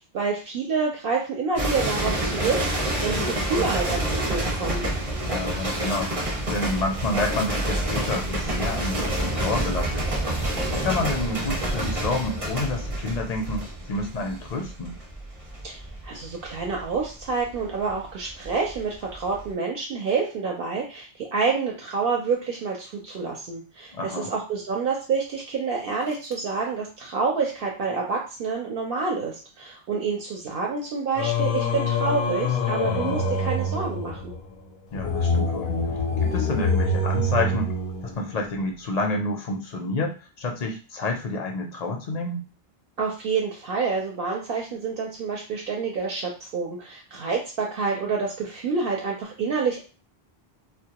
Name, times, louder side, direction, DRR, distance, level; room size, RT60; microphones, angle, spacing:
voice 1, 0.1-4.9 15.6-15.8 16.0-34.3 43.0-49.8, right 4 dB, 70° right, -1 dB, 0.7 m, -28 dB
sound 1, 1.6-18.8 19.1-19.5, right 1 dB, 35° right, 0.8 m, -28 dB
voice 2, 5.2-10.1 10.7-15.0 23.9-24.3 34.9-35.7 36.2-37.8 38.0-42.5, left 2 dB, 55° left, 2 dB, 0.5 m, -29 dB
Singing, 31.2-38.5, left 2 dB, 80° left, 0.8 m, -25 dB
2.1 x 2.0 x 2.8 m, 0.33 s
omnidirectional pair, 1.0 m